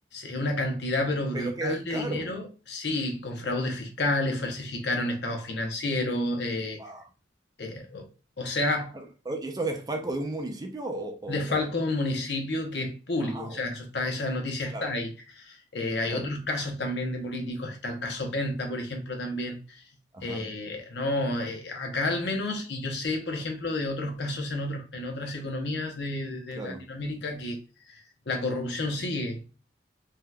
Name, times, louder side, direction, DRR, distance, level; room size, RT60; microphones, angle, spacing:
voice 1, 0.1-6.8 7.6-8.1 8.4-8.9 11.3-19.8 20.2-27.6 27.9-29.4, left 2 dB, 65° left, 0.8 m, -30 dB
voice 2, 1.3-2.3 6.8-7.0 8.9-11.7 13.2-13.6 14.7-14.9 16.1-16.2 20.1-20.5 26.6-26.8, right 2 dB, 20° right, 0.5 m, -34 dB
3.6 x 2.8 x 2.2 m
head